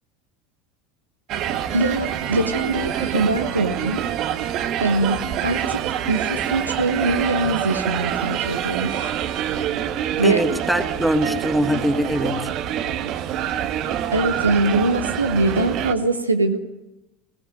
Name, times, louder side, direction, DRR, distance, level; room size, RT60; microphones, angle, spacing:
sound 1, 1.3-15.9, right 10 dB, 50° right, 1.5 m, -26 dB
voice 1, 1.7-4.0 4.8-5.8 6.1-9.1 10.2-10.4 14.1-16.6, right 2 dB, 85° right, 6 dB, 1.4 m, -22 dB
voice 2, 10.2-12.5, equal, 5° right, 6 dB, 2.8 m, -22 dB
21.0 x 17.5 x 9.3 m, 0.95 s
figure-of-eight pair, 70°, 0 cm